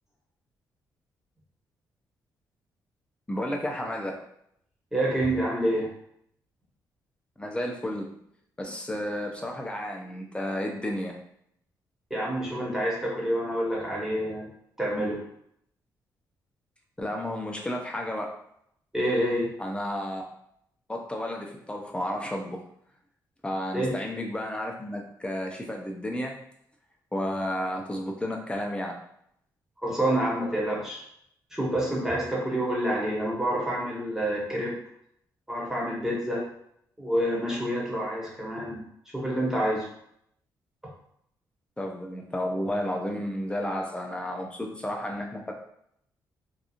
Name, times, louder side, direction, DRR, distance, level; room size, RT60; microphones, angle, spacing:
voice 1, 3.3-4.2 7.4-8.1 8.6-11.2 17.0-18.3 19.6-20.2 20.9-22.6 23.4-26.4 27.1-29.0 41.8-45.5, left 1 dB, 15° left, 1 dB, 0.5 m, -32 dB
voice 2, 4.9-5.9 12.1-14.5 14.8-15.2 18.9-19.5 23.7-23.9 29.8-31.0 31.5-34.8 35.5-36.4 37.0-38.8 39.1-39.8, right 1 dB, 5° right, -5 dB, 1.2 m, -27 dB
2.9 x 2.3 x 2.5 m, 0.71 s
cardioid pair, 80°, 8 cm